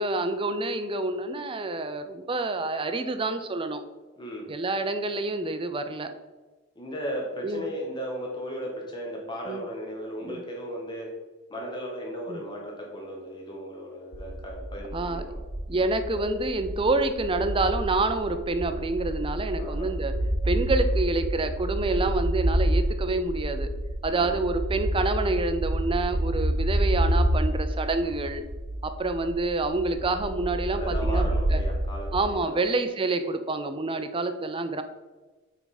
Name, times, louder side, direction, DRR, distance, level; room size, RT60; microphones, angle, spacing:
voice 1, 0.0-3.8 4.5-6.1 7.4-7.7 9.5-9.6 10.2-10.4 12.3-12.4 14.9-15.2 15.7-20.1 20.4-23.7 24.0-28.4 28.8-31.6 32.1-34.8, right 2 dB, 25° right, 9 dB, 0.5 m, -27 dB
voice 2, 4.2-4.5 6.8-11.1 11.5-15.4 19.6-19.9 24.1-24.3 30.7-32.1 32.4-32.7, equal, 20° left, -1 dB, 0.9 m, -36 dB
sound 1, 14.1-32.4, right 1 dB, 80° right, 1.1 m, -28 dB
5.8 x 4.6 x 4.1 m, 1.2 s
head